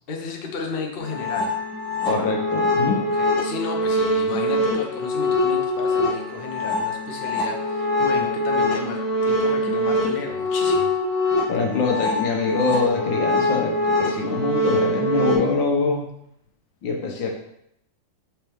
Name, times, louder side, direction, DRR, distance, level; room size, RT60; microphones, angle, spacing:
voice 1, 0.1-1.5 2.9-10.9, left 4 dB, 40° left, 1 dB, 0.8 m, -33 dB
sound 1, 1.0-15.4, left 1 dB, 80° right, 2.8 m, -23 dB
voice 2, 2.0-3.0 11.5-16.0 16.8-17.3, left 4 dB, 80° left, 1 dB, 1.7 m, -24 dB
6.5 x 4.4 x 3.5 m, 0.76 s
omnidirectional pair, 2.0 m